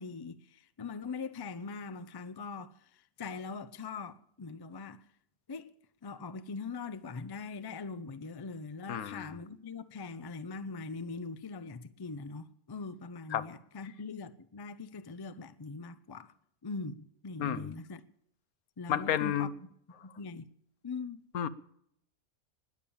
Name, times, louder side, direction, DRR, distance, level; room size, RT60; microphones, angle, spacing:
voice 1, 0.0-5.0 5.5-5.7 6.0-16.3 16.6-18.0 18.8-19.5 20.0-20.5 20.8-21.2, left 4 dB, 35° left, 0.3 m, -42 dB
voice 2, 8.9-9.3 13.3-13.5 17.4-17.7 18.9-19.5 21.3-21.5, left 10 dB, 85° left, 1.3 m, -31 dB
20.0 x 7.2 x 8.7 m
omnidirectional pair, 1.5 m